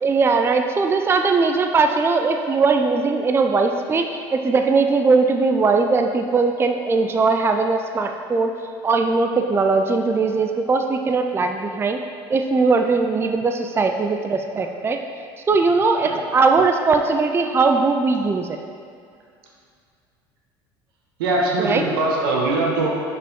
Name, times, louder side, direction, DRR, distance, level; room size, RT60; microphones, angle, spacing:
voice 1, 0.0-8.5 8.8-12.0 12.3-15.0 15.5-18.6 21.6-21.8, right 4 dB, 20° right, 5 dB, 0.4 m, -19 dB
voice 2, 21.2-22.9, right 2 dB, 85° right, -2 dB, 1.2 m, -21 dB
6.7 x 5.0 x 3.6 m, 2.3 s
hypercardioid pair, 80°, 12 cm